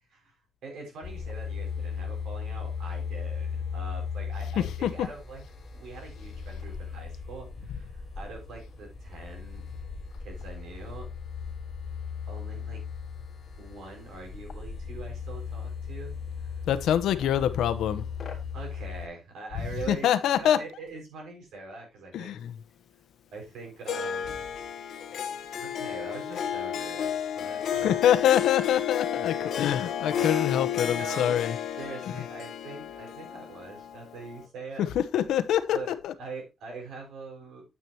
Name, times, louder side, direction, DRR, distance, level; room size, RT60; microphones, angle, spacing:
voice 1, 0.6-5.4 5.7-9.7 10.2-11.1 12.3-12.8 13.6-16.5 17.1-17.4 18.5-20.0 20.3-22.3 23.3-24.4 25.6-28.0 30.1-30.5 30.8-31.4 31.8-34.9 35.7-35.9 36.2-37.6, right 3 dB, 80° right, 5.6 m, -43 dB
sound 1, 1.0-19.1, left 6 dB, 35° left, 3.1 m, -37 dB
voice 2, 4.6-4.9 16.7-18.0 19.9-20.6 22.1-22.5 27.8-31.5 34.8-35.8 36.0-36.1, left 10 dB, 90° left, 1.0 m, -25 dB
Harp, 23.9-34.4, left 9 dB, 60° left, 1.2 m, -32 dB
9.5 x 8.6 x 2.9 m
cardioid pair, 160°, 0 cm